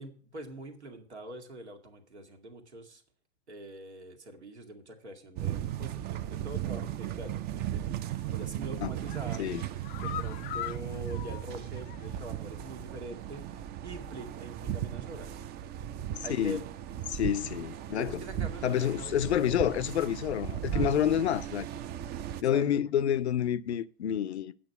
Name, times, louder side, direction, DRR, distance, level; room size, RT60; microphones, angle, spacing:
voice 1, 0.0-3.0 3.5-8.0 8.3-9.5 10.0-15.4 16.2-16.7 17.9-19.2 20.7-20.9 22.3-22.6, right 1 dB, 85° right, 1.8 m, -44 dB
sound 1, 5.4-22.4, right 11 dB, 30° right, 0.5 m, -36 dB
sound 2, 8.2-8.5 8.9-12.3 12.6-12.7 13.1-13.2, left 12 dB, 25° left, 0.4 m, -42 dB
voice 2, 17.1-18.1 18.6-21.7 22.4-24.5, left 10 dB, 75° left, 0.6 m, -28 dB
8.7 x 6.2 x 7.9 m
figure-of-eight pair, 95°, 33 cm